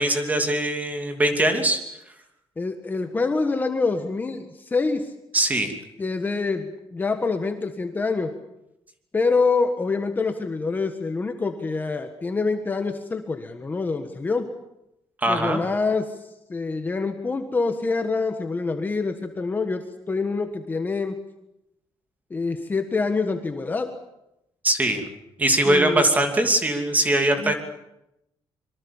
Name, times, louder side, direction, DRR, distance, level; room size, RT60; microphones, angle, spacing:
voice 1, 0.0-1.8 5.3-5.7 15.2-15.6 24.6-25.0 25.4-27.5, right 1 dB, 15° right, 5 dB, 2.8 m, -21 dB
voice 2, 2.6-5.1 6.0-8.3 9.1-14.5 15.3-16.2 16.5-21.1 22.3-23.9 25.6-26.0 27.4-27.5, left 4 dB, 20° left, 6 dB, 1.5 m, -26 dB
25.5 x 23.5 x 7.2 m, 0.86 s
cardioid pair, 175°, 10 cm